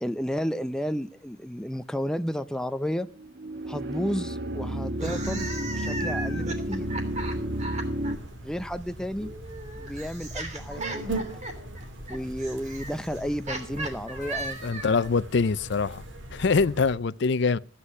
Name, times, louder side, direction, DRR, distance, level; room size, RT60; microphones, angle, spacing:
voice 1, 0.0-3.1 3.7-6.9 8.4-9.3 9.8-11.2 12.1-14.8, equal, 5° left, 0.5 m, -32 dB
sound 1, 3.1-8.2, right 1 dB, 60° right, 1.5 m, -31 dB
sound 2, 4.9-8.1 9.2-15.1, right 2 dB, 40° right, 3.1 m, -37 dB
sound 3, 5.0-17.0, right 1 dB, 75° right, 2.5 m, -40 dB
voice 2, 14.6-16.0 16.3-17.6, left 4 dB, 65° left, 0.5 m, -24 dB
15.5 x 9.8 x 5.6 m
head